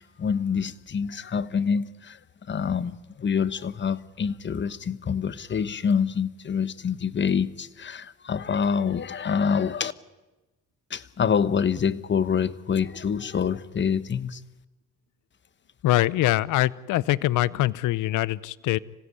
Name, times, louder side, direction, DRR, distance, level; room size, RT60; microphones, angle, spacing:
voice 1, 0.0-2.2 2.5-9.9 10.9-14.4, left 6 dB, 40° left, 1.1 m, -26 dB
voice 2, 15.8-18.8, left 16 dB, 85° left, 0.7 m, -23 dB
26.0 x 16.5 x 9.7 m
cardioid pair, 90°, 30 cm